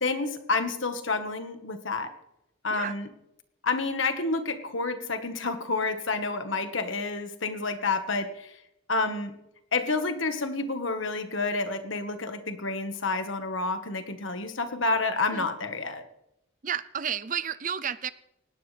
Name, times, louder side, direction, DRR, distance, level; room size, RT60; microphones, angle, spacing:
voice 1, 0.0-2.1 2.6-3.1 3.6-8.5 8.9-9.3 9.7-16.0, left 3 dB, 70° left, 8 dB, 1.5 m, -29 dB
voice 2, 16.6-18.1, right 8 dB, 40° right, 15 dB, 0.6 m, -32 dB
19.5 x 17.5 x 3.4 m, 0.83 s
head